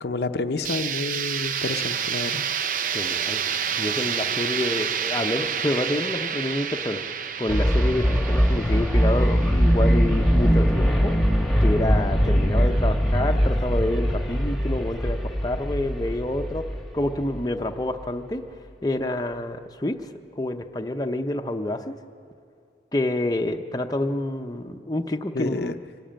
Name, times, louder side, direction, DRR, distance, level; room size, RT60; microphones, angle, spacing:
voice 1, 0.0-2.4 25.3-25.7, left 3 dB, 65° left, 8 dB, 0.7 m, -29 dB
sound 1, 0.6-10.4, right 8 dB, 45° right, 0.6 m, -29 dB
voice 2, 2.9-3.4 3.8-7.0 7.4-11.2 11.6-16.7 16.9-18.4 18.8-21.9 22.9-25.7, left 1 dB, 20° left, 5 dB, 0.7 m, -28 dB
sound 2, 7.5-17.4, equal, ahead, 1.4 m, -21 dB
25.0 x 12.5 x 8.9 m, 2.4 s
head